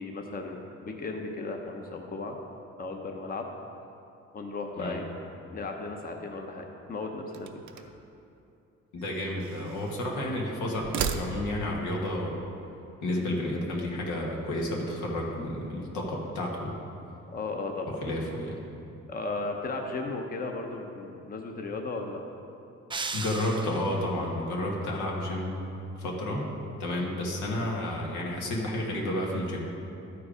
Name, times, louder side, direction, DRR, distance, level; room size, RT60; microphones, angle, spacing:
voice 1, 0.0-2.4 2.8-3.5 4.3-5.0 5.5-7.9 10.2-10.3 17.3-18.0 19.1-22.2, left 3 dB, 30° left, 2 dB, 0.8 m, -35 dB
sound 1, 7.3-8.1 9.0-10.1 10.7-11.8, right 6 dB, 70° right, 0.6 m, -35 dB
voice 2, 8.9-12.4 13.0-16.8 18.0-18.6 23.1-25.7 26.0-26.5 26.8-29.6, left 1 dB, 85° left, -2 dB, 1.6 m, -31 dB
sound 2, 22.9-24.2, right 4 dB, 15° right, 0.4 m, -36 dB
11.5 x 4.7 x 5.0 m, 2.8 s
cardioid pair, 90°, 30 cm